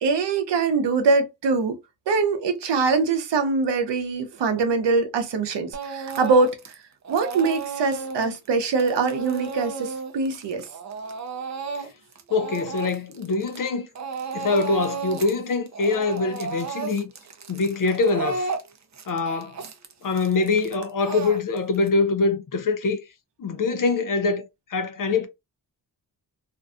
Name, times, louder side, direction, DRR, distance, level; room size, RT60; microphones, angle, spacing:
voice 1, 0.0-1.8 2.1-6.6 7.1-10.7, right 4 dB, 90° right, 0.7 m, -23 dB
Speech / Crying sobbing, 5.7-6.7 7.0-13.7 13.9-15.4 15.7-21.9, right 4 dB, 45° right, 0.5 m, -33 dB
voice 2, 12.3-13.9 14.3-17.1 17.5-18.5 19.1-19.6 20.0-23.0 23.4-25.3, left 3 dB, 50° left, 0.5 m, -24 dB
2.5 x 2.2 x 2.4 m
wide cardioid pair, 100°, 41 cm